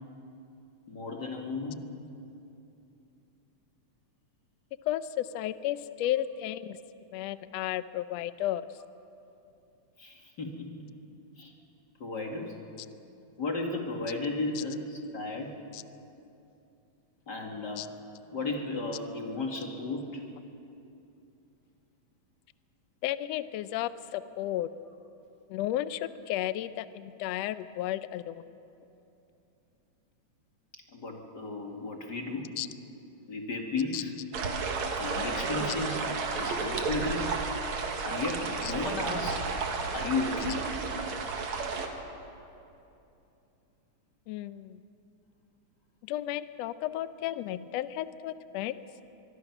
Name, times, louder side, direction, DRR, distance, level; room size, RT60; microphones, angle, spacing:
voice 1, 0.9-1.9 10.0-10.9 11.4-11.5 12.0-12.6 13.4-15.6 17.3-18.0 18.3-20.2 30.9-32.5 33.3-34.1 35.0-36.0 36.3-37.4 38.0-39.5 39.9-40.8, left 3 dB, 35° left, 1 dB, 2.3 m, -34 dB
voice 2, 4.8-6.8 7.1-8.7 14.6-14.7 15.7-15.8 17.8-17.9 23.0-24.7 25.5-28.4 32.6-32.7 33.9-34.0 38.6-38.7 44.3-44.8 46.0-48.8, left 13 dB, 75° left, 13 dB, 1.6 m, -33 dB
sound 1, 34.3-41.9, right 4 dB, 65° right, 2.9 m, -32 dB
24.5 x 23.0 x 6.0 m, 2.8 s
omnidirectional pair, 3.5 m